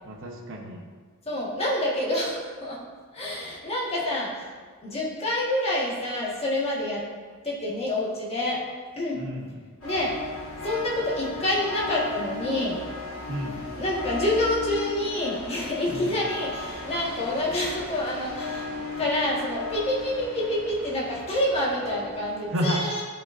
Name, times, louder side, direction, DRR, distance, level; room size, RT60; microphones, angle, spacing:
voice 1, 0.0-0.8 9.2-9.5 13.3-13.6 15.9-16.1 22.5-22.8, equal, 60° right, 1 dB, 1.0 m, -30 dB
voice 2, 1.2-2.8 3.1-4.5 4.8-7.0 7.4-8.6 9.0-9.2 9.8-10.1 10.6-12.8 13.8-23.0, left 1 dB, 30° left, -5 dB, 1.6 m, -27 dB
sound 1, 9.8-22.4, left 3 dB, 75° left, 2.0 m, -36 dB
12.0 x 5.3 x 2.6 m, 1.5 s
head